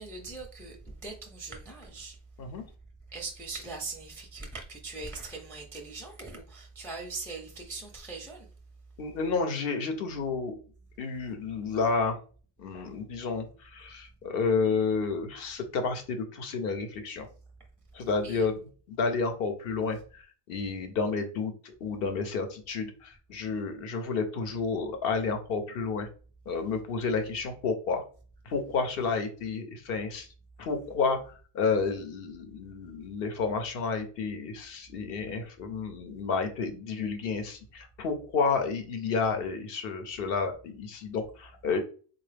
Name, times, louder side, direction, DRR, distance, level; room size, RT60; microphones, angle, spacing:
voice 1, 0.0-2.1 3.1-8.5 18.2-18.5, right 3 dB, 5° left, 0.4 m, -41 dB
voice 2, 9.0-10.6 11.0-12.2 12.6-17.3 17.9-18.6 18.9-26.1 26.5-28.0 28.5-30.3 30.6-41.8, left 4 dB, 70° left, 0.8 m, -31 dB
3.7 x 2.3 x 3.2 m
omnidirectional pair, 1.0 m